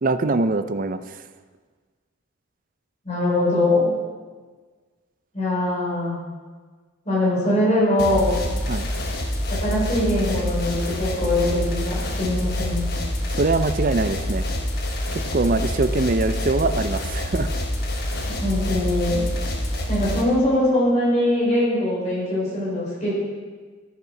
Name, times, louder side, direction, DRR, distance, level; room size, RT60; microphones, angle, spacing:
voice 1, 0.0-1.0 8.7-8.9 13.4-14.5 15.3-17.5, right 3 dB, 40° right, 11 dB, 0.5 m, -22 dB
voice 2, 3.0-3.9 5.3-6.2 7.1-8.4 9.5-12.9 18.3-19.2 19.9-23.1, left 1 dB, 35° left, -6 dB, 4.2 m, -22 dB
sound 1, 8.0-20.2, left 1 dB, 50° left, 1.4 m, -26 dB
13.5 x 6.7 x 6.0 m, 1.5 s
head